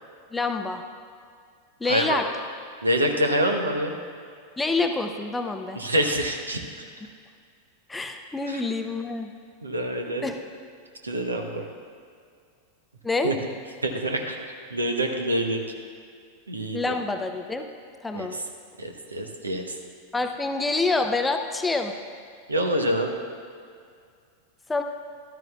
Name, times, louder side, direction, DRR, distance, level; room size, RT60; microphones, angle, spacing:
voice 1, 0.3-0.8 1.8-2.2 4.6-5.8 7.9-9.3 10.2-10.4 13.0-13.3 16.7-17.6 18.0-18.3 20.1-21.9 24.7-24.8, left 3 dB, 10° left, 6 dB, 0.6 m, -27 dB
voice 2, 1.8-2.2 2.8-4.0 5.7-6.6 8.5-8.6 9.6-10.3 11.0-11.6 13.2-13.3 13.8-14.4 14.7-15.6 16.5-16.8 18.1-18.4 18.8-19.7 22.5-23.1, right 1 dB, 80° right, 3 dB, 1.0 m, -26 dB
14.0 x 12.5 x 2.4 m, 2.2 s
figure-of-eight pair, 90°, 0 cm